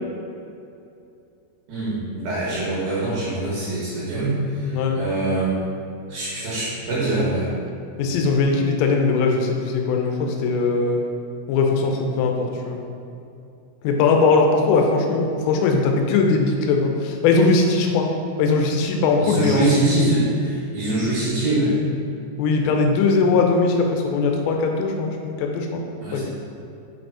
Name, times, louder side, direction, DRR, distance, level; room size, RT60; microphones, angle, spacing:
voice 1, 1.7-5.5 6.1-7.5 19.2-21.8 26.0-26.2, right 2 dB, 60° right, -8 dB, 2.9 m, -23 dB
voice 2, 8.0-11.0 11.5-12.8 13.8-18.1 18.4-19.7 22.4-25.8 26.1-26.2, left 4 dB, 85° left, 2 dB, 3.3 m, -20 dB
7.2 x 5.2 x 4.8 m, 2.6 s
omnidirectional pair, 5.8 m